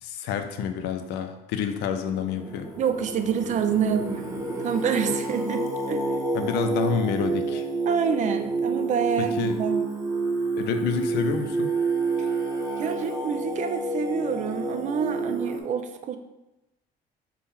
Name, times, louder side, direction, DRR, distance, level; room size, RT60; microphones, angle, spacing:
voice 1, 0.0-2.7 6.3-7.7 9.2-9.6 10.5-11.7, left 7 dB, 85° left, 7 dB, 0.4 m, -28 dB
Singing, 1.8-15.6, right 3 dB, 20° right, 0.7 m, -29 dB
voice 2, 2.8-4.4 4.6-6.0 7.9-9.9 12.2-12.3 12.8-16.2, right 7 dB, 45° right, 7 dB, 0.4 m, -27 dB
4.2 x 2.2 x 3.6 m, 0.95 s
cardioid pair, 110°, 17 cm